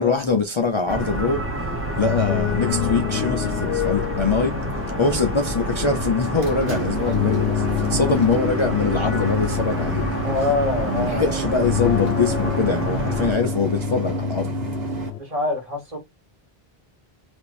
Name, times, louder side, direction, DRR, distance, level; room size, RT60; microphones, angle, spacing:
voice 1, 0.0-1.5 2.0-4.6 5.0-10.1 10.9-14.5, left 4 dB, 40° left, 0.5 m, -23 dB
sound 1, 0.9-13.3, right 1 dB, 15° right, 0.8 m, -28 dB
sound 2, 1.8-15.2, left 13 dB, 85° left, 0.9 m, -28 dB
sound 3, 6.2-15.1, right 7 dB, 70° right, 1.2 m, -31 dB
voice 2, 7.6-8.3 9.1-9.3 10.2-11.5 15.2-16.0, left 2 dB, 35° right, 1.6 m, -27 dB
3.4 x 2.9 x 2.6 m
omnidirectional pair, 1.1 m